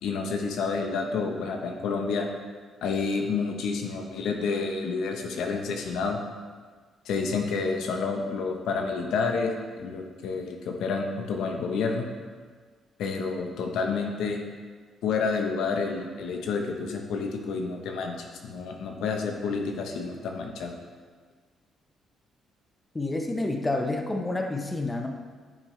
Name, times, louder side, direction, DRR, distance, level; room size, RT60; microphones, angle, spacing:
voice 1, 0.0-2.3 2.8-6.2 7.0-12.0 13.0-14.4 15.0-20.7, left 4 dB, 80° left, 3 dB, 0.9 m, -29 dB
voice 2, 22.9-25.1, left 2 dB, 20° left, 3 dB, 0.8 m, -29 dB
10.5 x 6.0 x 3.2 m, 1.5 s
cardioid pair, 90°, 0 cm